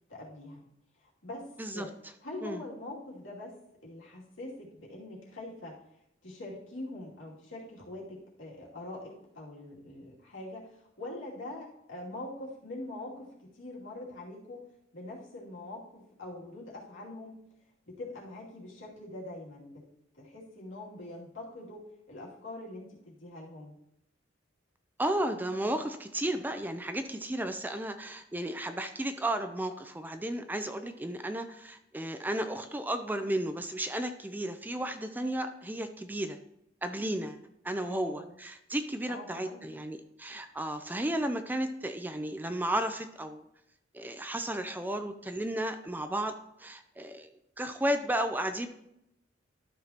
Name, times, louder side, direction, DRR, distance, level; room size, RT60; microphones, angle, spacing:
voice 1, 0.1-0.7 1.0-1.9 2.2-3.6 3.8-5.8 6.2-14.6 14.9-17.4 17.9-19.8 20.2-23.7 37.8-38.3 39.1-39.8, left 2 dB, 70° left, -4 dB, 2.6 m, -44 dB
voice 2, 25.0-36.4 36.8-43.4 43.9-47.3 47.6-48.7, right 1 dB, 10° right, 8 dB, 0.4 m, -33 dB
12.5 x 6.2 x 2.9 m, 0.79 s
head